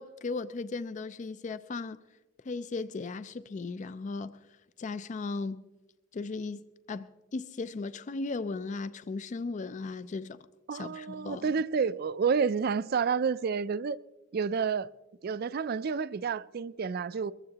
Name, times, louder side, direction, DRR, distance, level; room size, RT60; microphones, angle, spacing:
voice 1, 0.0-2.0 2.4-4.4 4.8-5.6 6.1-10.5 10.7-11.5, left 3 dB, 40° left, 0.4 m, -36 dB
voice 2, 10.7-14.0 14.3-14.9 15.2-17.3, right 6 dB, 50° right, 0.4 m, -29 dB
22.5 x 15.0 x 2.9 m
head